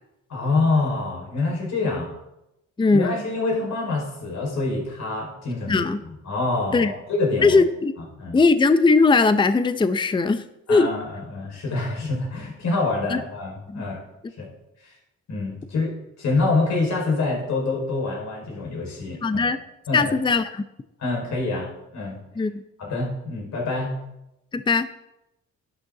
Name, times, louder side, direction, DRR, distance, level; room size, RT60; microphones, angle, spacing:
voice 1, 0.3-2.1 2.9-5.9 6.2-7.6 8.2-8.4 10.7-14.0 14.4-14.5 14.8-14.9 15.3-19.4 19.9-20.1 21.0-22.2 22.8-23.9, left 3 dB, 65° left, -2 dB, 4.9 m, -26 dB
voice 2, 2.8-3.2 5.7-6.0 6.7-6.9 7.4-7.9 8.3-10.9 13.1-13.2 13.7-13.9 19.2-19.6 19.9-20.6 22.4-22.6 24.5-24.9, left 3 dB, 15° left, 12 dB, 0.6 m, -19 dB
11.5 x 11.5 x 3.9 m, 0.90 s
cardioid pair, 90°, 30 cm